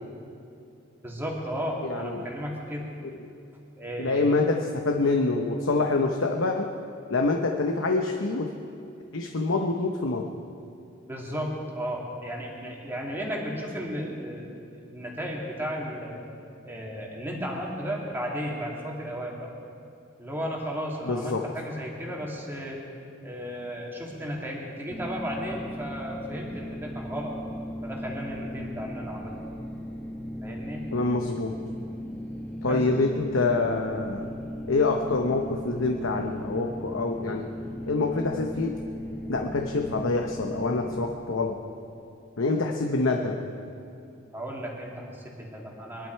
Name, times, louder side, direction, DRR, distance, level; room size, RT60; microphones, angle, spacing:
voice 1, 1.0-2.9 3.8-4.4 11.1-14.6 14.9-16.2 16.6-19.5 20.2-22.8 23.2-27.4 27.8-29.4 30.4-30.8 32.6-32.8 44.3-46.1, equal, 10° right, -3 dB, 2.4 m, -34 dB
voice 2, 1.8-2.3 4.0-6.7 7.1-8.5 9.1-10.3 21.1-21.4 30.9-31.5 32.6-34.3 34.7-37.5 37.9-38.7 39.3-41.6 42.4-43.4, left 3 dB, 75° left, 3 dB, 0.9 m, -26 dB
sound 1, 24.9-41.1, equal, 10° left, 1.7 m, -37 dB
22.0 x 11.5 x 4.6 m, 2.6 s
head